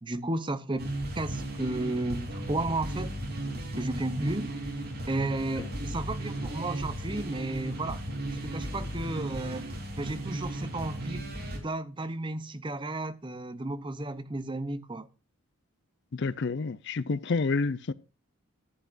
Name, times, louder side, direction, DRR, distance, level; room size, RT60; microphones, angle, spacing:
voice 1, 0.0-3.1 3.7-4.6 5.1-8.0 8.4-9.7 9.9-15.1, right 2 dB, 20° right, 0.7 m, -33 dB
sound 1, 0.8-11.6, right 1 dB, 45° right, 3.5 m, -35 dB
voice 2, 16.1-17.9, left 4 dB, 50° left, 0.5 m, -29 dB
14.0 x 8.3 x 2.5 m
head